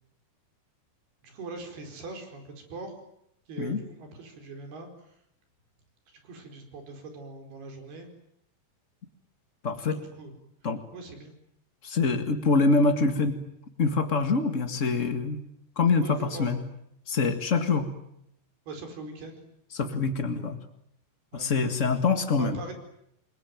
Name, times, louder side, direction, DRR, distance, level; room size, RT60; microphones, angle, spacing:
voice 1, 1.2-3.0 3.5-5.1 6.2-8.1 10.0-10.3 10.9-11.3 16.0-16.6 18.7-19.4 20.4-20.6 21.3-21.5 22.4-22.7, right 3 dB, 70° right, 5 dB, 6.6 m, -41 dB
voice 2, 9.6-10.0 10.6-10.8 11.8-13.4 13.8-15.4 15.7-16.6 17.1-17.9 19.7-20.6 21.3-22.6, left 4 dB, 60° left, 7 dB, 0.7 m, -25 dB
28.5 x 22.5 x 9.3 m, 0.76 s
omnidirectional pair, 4.7 m